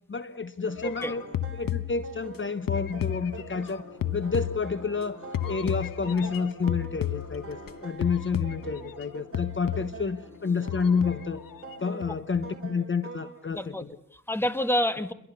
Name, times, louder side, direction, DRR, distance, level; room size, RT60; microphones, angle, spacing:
voice 1, 0.1-1.2 1.5-3.8 4.1-5.2 5.5-11.4 11.8-13.9, left 5 dB, 35° left, 12 dB, 1.1 m, -29 dB
sound 1, 0.6-13.4, right 5 dB, 40° right, 4.5 m, -45 dB
sound 2, 0.8-2.4 2.7-5.0 5.3-7.7 8.0-9.1 9.3-10.1 10.7-11.7 12.0-12.5, left 12 dB, 90° left, 1.1 m, -33 dB
sound 3, 2.5-12.1, left 4 dB, 55° left, 4.3 m, -49 dB
voice 2, 13.5-15.1, left 1 dB, 5° left, 10 dB, 1.6 m, -28 dB
29.0 x 23.0 x 7.0 m, 0.67 s
wide cardioid pair, 95°, 33 cm